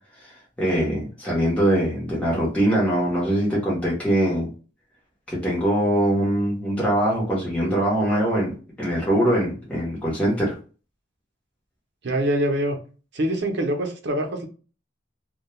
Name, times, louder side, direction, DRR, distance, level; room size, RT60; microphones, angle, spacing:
voice 1, 0.6-4.5 5.3-10.5, right 1 dB, 5° left, -7 dB, 0.8 m, -22 dB
voice 2, 12.0-12.8 13.1-14.5, right 1 dB, 65° right, 3 dB, 0.6 m, -24 dB
2.2 x 2.2 x 2.9 m, 0.36 s
head